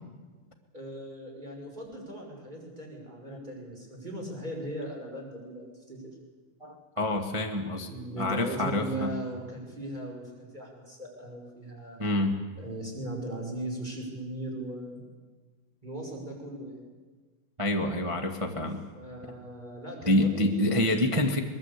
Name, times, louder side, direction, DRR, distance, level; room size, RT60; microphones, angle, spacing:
voice 1, 0.7-6.0 7.7-12.0 12.6-15.0 15.8-16.9 18.9-21.0, right 1 dB, 10° right, 0 dB, 5.6 m, -38 dB
voice 2, 6.6-7.9 8.2-9.1 12.0-12.4 17.6-18.8 20.1-21.4, left 1 dB, 40° right, 2 dB, 0.4 m, -27 dB
23.0 x 21.0 x 8.4 m, 1.4 s
omnidirectional pair, 3.9 m